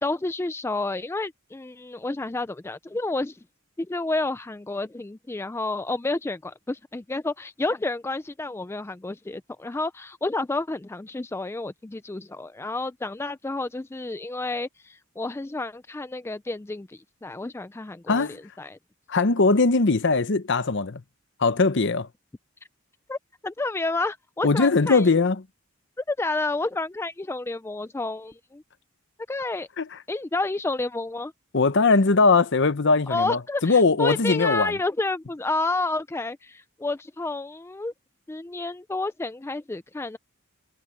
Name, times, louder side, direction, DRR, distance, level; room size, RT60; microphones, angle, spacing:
voice 1, 0.0-3.4 3.8-18.8 23.1-23.2 23.4-25.1 26.1-28.6 29.3-29.7 30.1-31.3 33.1-37.9 38.3-40.2, left 2 dB, 10° left, 0.3 m, -30 dB
voice 2, 18.1-18.4 19.1-21.0 21.4-22.1 24.4-25.4 29.8-29.9 31.5-34.7, left 3 dB, 55° left, 0.8 m, -20 dB
head